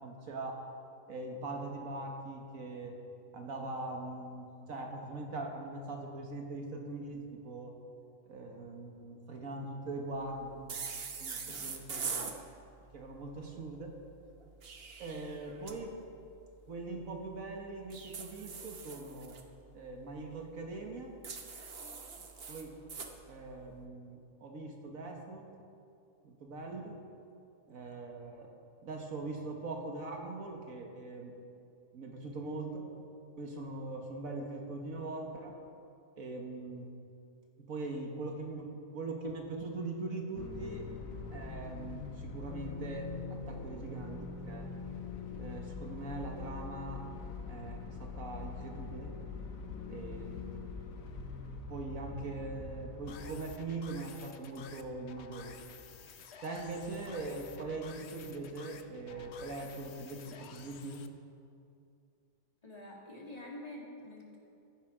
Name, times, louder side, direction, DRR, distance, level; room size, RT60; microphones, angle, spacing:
voice 1, 0.0-0.6 1.1-3.0 3.3-7.7 8.3-10.7 11.2-12.3 12.9-14.0 15.0-16.0 16.7-19.4 19.7-21.1 22.5-22.8 23.3-25.5 26.2-27.0 27.7-28.5 28.8-31.4 31.9-32.9 33.4-35.6 36.2-36.9 37.7-40.9 41.3-44.7 45.4-47.0 47.5-49.1 49.9-50.7 51.7-55.6 56.4-61.1, right 2 dB, 85° right, 2 dB, 1.9 m, -41 dB
sound 1, 10.7-12.4 14.4-15.8 17.9-19.4 21.2-23.1, right 5 dB, 50° right, 1.2 m, -42 dB
sound 2, 40.3-53.8, left 4 dB, 80° left, 1.4 m, -43 dB
sound 3, 53.1-61.1, left 7 dB, 60° left, 0.9 m, -52 dB
voice 2, 62.6-64.4, left 1 dB, 30° left, -2 dB, 2.1 m, -47 dB
14.5 x 10.5 x 5.0 m, 2.6 s
omnidirectional pair, 1.4 m